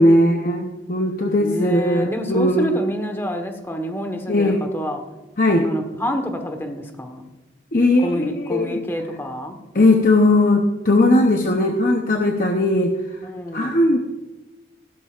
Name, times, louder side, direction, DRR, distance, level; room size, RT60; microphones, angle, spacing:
voice 1, 0.0-2.8 4.3-4.6 5.4-5.7 7.7-8.8 9.7-12.9 13.5-14.0, left 1 dB, 50° left, 3 dB, 0.8 m, -18 dB
voice 2, 1.4-5.0 5.6-7.2 8.0-9.6 13.2-13.8, equal, 15° left, 5 dB, 1.2 m, -27 dB
15.5 x 12.5 x 2.5 m, 1.1 s
head